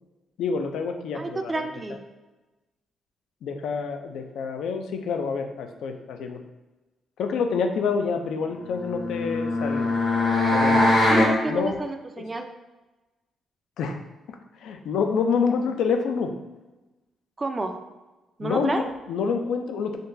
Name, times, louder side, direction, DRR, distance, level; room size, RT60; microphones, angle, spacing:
voice 1, 0.4-1.5 3.4-6.4 7.2-9.9 10.5-10.8 11.5-11.8 13.8-14.0 14.6-16.3 18.4-20.0, left 5 dB, 80° left, 5 dB, 0.3 m, -27 dB
voice 2, 1.1-2.0 10.7-12.5 17.4-17.8 18.4-18.9, right 2 dB, 25° right, 6 dB, 0.3 m, -30 dB
sound 1, 8.8-11.4, left 2 dB, 60° left, 1.0 m, -21 dB
3.7 x 2.2 x 2.6 m, 1.1 s
cardioid pair, 75°, 0 cm